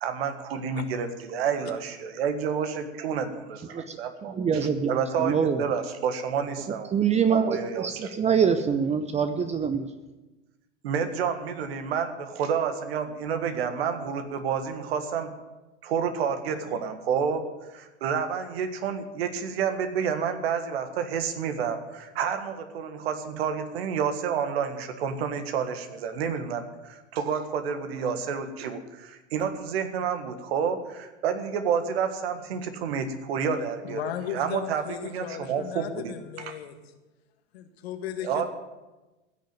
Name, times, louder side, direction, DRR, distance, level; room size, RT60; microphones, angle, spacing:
voice 1, 0.0-4.3 4.9-6.9 7.3-8.1 10.8-15.3 15.8-17.5 17.7-34.0 34.3-36.1 36.5-36.6 38.2-38.4, right 7 dB, 60° right, 8 dB, 1.7 m, -29 dB
voice 2, 3.7-5.7 6.9-9.9, right 6 dB, 20° right, 9 dB, 0.7 m, -25 dB
voice 3, 33.5-36.8 37.5-38.4, left 9 dB, 60° left, 7 dB, 1.7 m, -36 dB
15.5 x 6.6 x 9.4 m, 1.1 s
figure-of-eight pair, 85°, 34 cm